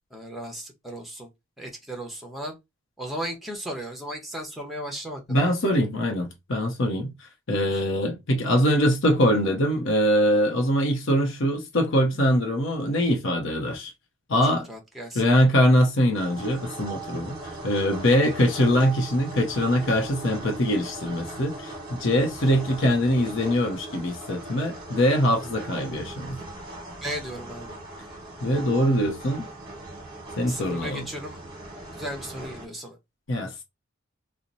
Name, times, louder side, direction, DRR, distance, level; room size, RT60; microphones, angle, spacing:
voice 1, 0.1-1.3 1.6-2.6 3.0-5.2 14.4-15.2 27.0-27.8 30.5-31.4 31.9-33.0, equal, ahead, 0.9 m, -35 dB
voice 2, 5.3-7.1 7.5-13.9 14.3-14.7 15.1-26.4 28.4-29.5 30.4-31.1 33.3-33.5, equal, 70° left, 0.7 m, -23 dB
sound 1, 16.1-32.7, right 2 dB, 25° right, 1.3 m, -39 dB
2.9 x 2.0 x 3.8 m
head